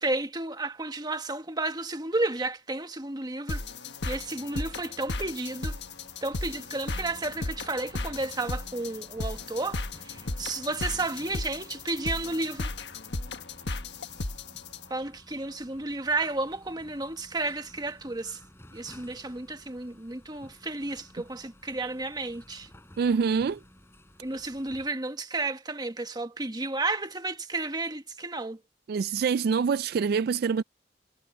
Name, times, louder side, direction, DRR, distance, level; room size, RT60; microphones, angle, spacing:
voice 1, 0.0-3.6 4.0-5.8 6.2-12.7 14.9-18.4 18.7-22.7 24.2-28.6, right 2 dB, 25° right, 1.4 m, -32 dB
sound 1, 3.5-14.9, left 2 dB, 70° left, 1.4 m, -35 dB
sound 2, 5.7-24.9, left 1 dB, 15° left, 4.2 m, -54 dB
voice 2, 23.0-23.6 28.9-30.6, right 6 dB, 60° right, 0.3 m, -25 dB
head